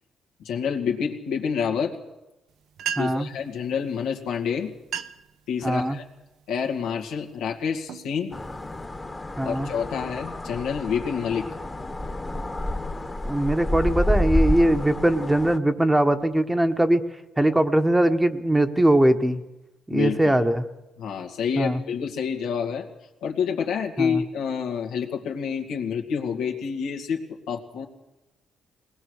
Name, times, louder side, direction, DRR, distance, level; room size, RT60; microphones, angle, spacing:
voice 1, 0.4-2.0 3.0-4.7 5.5-6.0 6.5-8.3 9.4-11.5 19.9-20.4 21.0-22.9 23.2-27.2 27.5-27.8, left 7 dB, 90° left, 1 dB, 2.2 m, -28 dB
sound 1, 2.5-2.6 2.8-3.4 4.3-4.4 4.8-5.3 5.8-6.2 6.8-7.1 7.6-8.8, right 8 dB, 70° right, 0.9 m, -35 dB
voice 2, 3.0-3.3 5.6-6.0 9.4-9.7 13.2-17.0 17.4-19.4 19.9-20.6 21.6-21.8 24.0-24.2, right 1 dB, 10° right, 8 dB, 1.2 m, -21 dB
sound 2, 8.3-15.6, left 1 dB, 20° left, 1.4 m, -29 dB
20.0 x 19.5 x 6.5 m, 0.99 s
cardioid pair, 90°, 0 cm